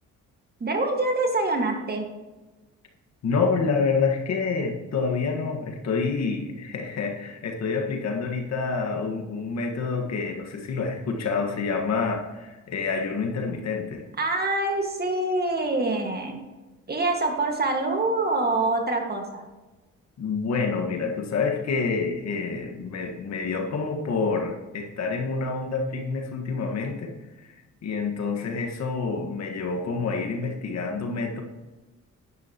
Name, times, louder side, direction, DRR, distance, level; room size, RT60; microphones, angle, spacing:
voice 1, 0.6-2.1 14.2-16.4 16.9-19.5, right 2 dB, 30° right, 3 dB, 1.8 m, -25 dB
voice 2, 3.2-14.0 20.2-27.1 27.4-27.5 27.8-31.4, left 4 dB, 60° left, 3 dB, 1.7 m, -27 dB
10.5 x 9.8 x 3.0 m, 1.2 s
cardioid pair, 90°, 30 cm